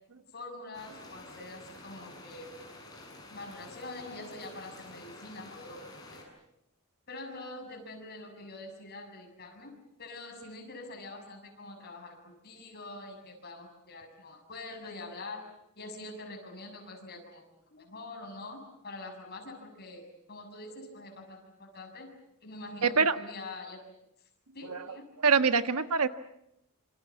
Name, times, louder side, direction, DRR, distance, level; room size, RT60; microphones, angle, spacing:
voice 1, 0.3-2.5 3.3-6.2 7.1-9.7 10.0-15.5 15.8-17.4 17.7-22.1 22.4-23.8 24.5-25.1, left 2 dB, 45° left, 3 dB, 7.0 m, -45 dB
sound 1, 0.7-6.2, left 2 dB, 20° left, 7.5 m, -49 dB
voice 2, 22.8-23.2 24.7-25.0 25.2-26.1, right 5 dB, 90° right, 10 dB, 1.4 m, -24 dB
27.0 x 26.5 x 7.3 m, 0.78 s
head